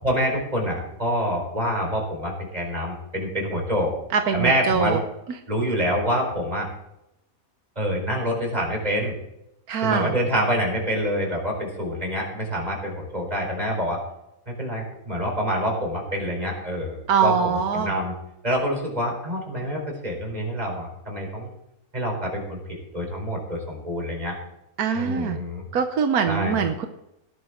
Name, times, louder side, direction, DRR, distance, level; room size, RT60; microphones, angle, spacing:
voice 1, 0.0-3.9 4.3-5.0 5.5-6.7 7.8-9.1 9.8-14.0 14.5-18.1 18.4-21.5 21.9-22.6 22.9-24.4 24.9-25.7 26.3-26.6, equal, 25° right, 0 dB, 4.5 m, -26 dB
voice 2, 4.1-5.0 9.7-10.1 17.1-17.9 24.8-25.4 25.7-26.9, right 6 dB, 85° right, 6 dB, 1.4 m, -23 dB
18.0 x 11.0 x 3.8 m, 0.85 s
omnidirectional pair, 1.5 m